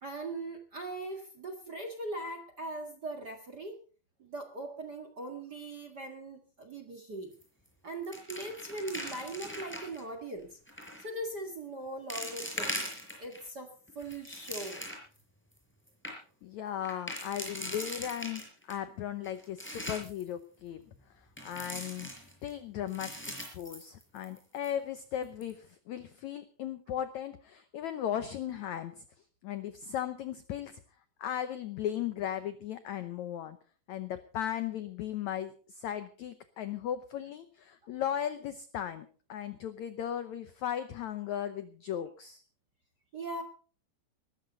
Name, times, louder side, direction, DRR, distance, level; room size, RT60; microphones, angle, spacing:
voice 1, 0.0-3.8 4.2-7.3 7.8-10.6 11.0-12.9 13.2-14.9 37.8-37.9 43.1-43.4, right 2 dB, 40° right, 7 dB, 1.5 m, -40 dB
sound 1, 7.3-7.7 7.9-10.0 10.7-11.0 11.6-11.7 12.1-13.4 13.9-15.2 15.6-15.7 15.9-16.1 16.8-18.8 19.2-20.2 21.4-22.5 22.9-24.4 24.6-24.7 25.2-25.5, equal, 5° left, 5.1 m, -40 dB
voice 2, 16.4-18.4 18.7-20.8 21.4-22.1 22.4-23.1 23.5-29.0 29.4-30.8 31.2-33.6 33.9-42.4, left 10 dB, 85° left, 11 dB, 1.6 m, -36 dB
19.5 x 14.0 x 4.0 m, 0.39 s
omnidirectional pair, 4.5 m